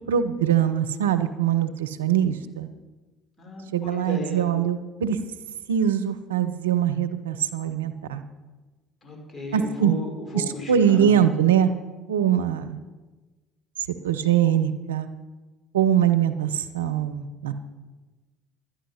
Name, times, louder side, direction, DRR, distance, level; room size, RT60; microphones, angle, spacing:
voice 1, 0.1-2.7 3.7-5.2 5.7-8.2 9.5-9.9 10.3-11.7 12.1-12.8 14.0-15.1 15.7-17.5, right 9 dB, 90° right, 9 dB, 0.7 m, -22 dB
voice 2, 3.4-4.5 9.0-11.1, left 3 dB, 20° left, 0 dB, 4.9 m, -35 dB
11.5 x 10.5 x 5.7 m, 1.2 s
hypercardioid pair, 65°, 0 cm